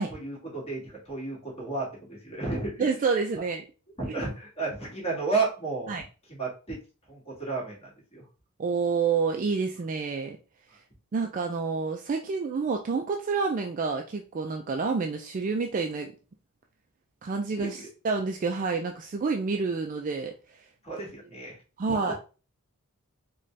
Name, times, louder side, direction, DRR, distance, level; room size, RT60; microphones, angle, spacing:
voice 1, 0.1-2.7 4.0-5.9 6.3-6.8 7.1-8.2 17.5-17.9 20.8-21.6 21.9-22.1, right 3 dB, 30° left, -4 dB, 1.6 m, -32 dB
voice 2, 2.8-3.6 5.9-6.0 8.6-10.4 11.1-16.1 17.2-20.7 21.8-22.1, right 4 dB, 35° right, 3 dB, 0.3 m, -28 dB
4.0 x 2.3 x 3.2 m, 0.34 s
head